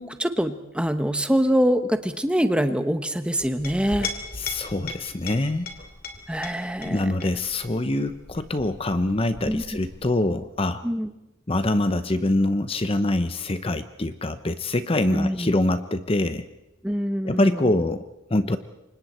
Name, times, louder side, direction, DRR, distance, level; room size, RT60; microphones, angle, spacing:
voice 1, 0.0-4.1 6.3-7.0 9.5-9.6 10.8-11.1 15.0-15.5 16.8-17.7, equal, 5° right, 8 dB, 1.0 m, -24 dB
Chink clink, 3.4-10.5, left 3 dB, 45° left, 3.0 m, -39 dB
voice 2, 4.4-5.7 6.8-10.8 11.5-16.4 17.2-18.6, left 1 dB, 25° left, 11 dB, 0.7 m, -24 dB
28.5 x 25.0 x 4.3 m, 0.97 s
head